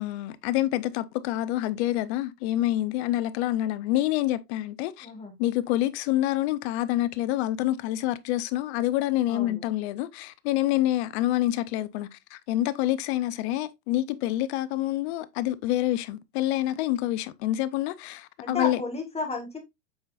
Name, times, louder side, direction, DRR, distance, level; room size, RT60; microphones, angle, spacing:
voice 1, 0.0-5.1 5.4-18.8, left 14 dB, 45° left, 0.7 m, -27 dB
voice 2, 5.0-5.3 9.3-9.6 18.4-19.6, left 3 dB, 15° left, 1.8 m, -33 dB
7.9 x 5.5 x 2.5 m
hypercardioid pair, 120°, 48 cm